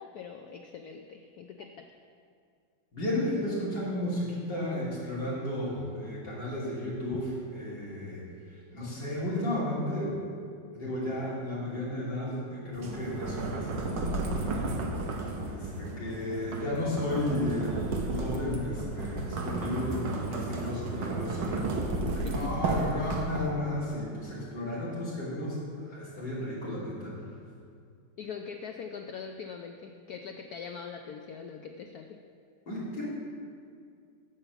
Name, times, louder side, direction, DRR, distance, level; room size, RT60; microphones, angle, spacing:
voice 1, 0.0-1.9 14.1-14.2 22.2-22.7 28.2-32.2, left 6 dB, 75° left, 4 dB, 0.8 m, -42 dB
voice 2, 2.9-7.3 7.5-8.2 8.7-10.1 10.7-14.8 15.4-25.6 25.9-27.1 32.7-33.1, left 1 dB, 60° left, -7 dB, 3.6 m, -33 dB
sound 1, 12.7-23.7, right 2 dB, 65° right, 1.6 m, -33 dB
8.8 x 7.1 x 7.0 m, 2.3 s
omnidirectional pair, 2.2 m